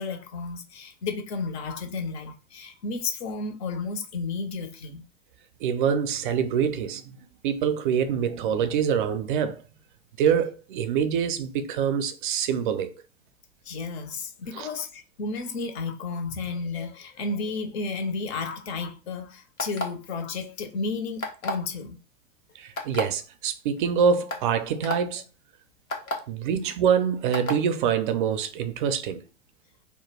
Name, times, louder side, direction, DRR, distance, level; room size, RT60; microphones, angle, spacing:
voice 1, 0.0-5.0 13.6-22.0 26.0-26.1, left 4 dB, 50° left, 0.7 m, -32 dB
voice 2, 5.6-7.2 7.4-9.6 10.2-12.9 14.5-14.7 22.6-25.2 26.3-29.2, right 7 dB, 40° right, 0.4 m, -25 dB
sound 1, 19.6-20.0 21.2-21.6 22.8-23.0 23.8-23.9 24.3-24.4 24.8-25.0 25.9-26.1 27.3-27.6, left 1 dB, 85° left, 0.8 m, -29 dB
2.2 x 2.2 x 3.2 m
figure-of-eight pair, 100°, 40 cm